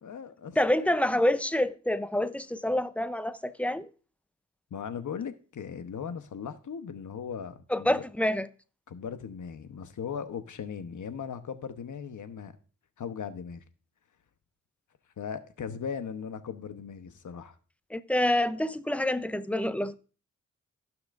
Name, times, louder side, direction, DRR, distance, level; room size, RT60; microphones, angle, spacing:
voice 1, 0.0-1.2 4.7-8.0 8.9-12.5 13.0-13.6 15.2-17.5, left 7 dB, 70° left, 1.1 m, -38 dB
voice 2, 0.6-3.9 7.7-8.5 17.9-19.9, left 1 dB, 5° left, 0.7 m, -27 dB
15.0 x 6.0 x 2.6 m
cardioid pair, 55°, 32 cm